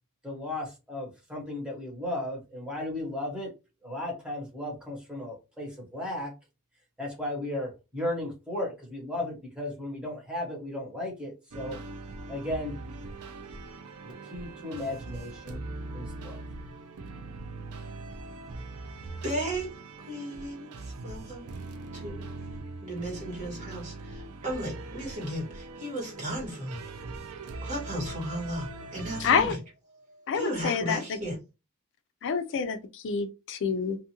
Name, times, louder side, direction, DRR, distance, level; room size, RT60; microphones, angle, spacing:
voice 1, 0.2-3.5 3.8-6.3 7.0-11.8 12.3-12.7 14.0-15.6 15.9-16.4, left 1 dB, 5° right, 1.1 m, -35 dB
sound 1, 11.5-29.5, right 3 dB, 70° right, 0.5 m, -41 dB
voice 2, 19.2-19.7 20.1-21.5 21.9-22.2 22.8-26.8 27.6-29.6 30.1-31.3, right 1 dB, 35° right, 1.5 m, -35 dB
voice 3, 29.2-29.6 30.3-31.0 32.2-34.0, left 6 dB, 55° left, 0.4 m, -27 dB
2.6 x 2.4 x 2.8 m
head